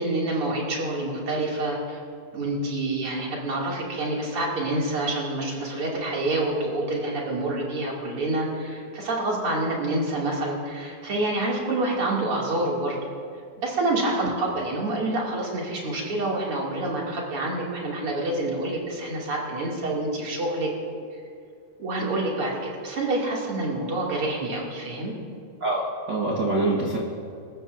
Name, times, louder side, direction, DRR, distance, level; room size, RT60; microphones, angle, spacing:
voice 1, 0.0-2.0 2.3-13.0 13.6-20.9 21.8-25.1, right 2 dB, 40° right, -3 dB, 2.9 m, -27 dB
voice 2, 25.6-27.0, right 2 dB, 80° right, -3 dB, 1.0 m, -25 dB
26.5 x 14.0 x 2.6 m, 2.4 s
omnidirectional pair, 4.6 m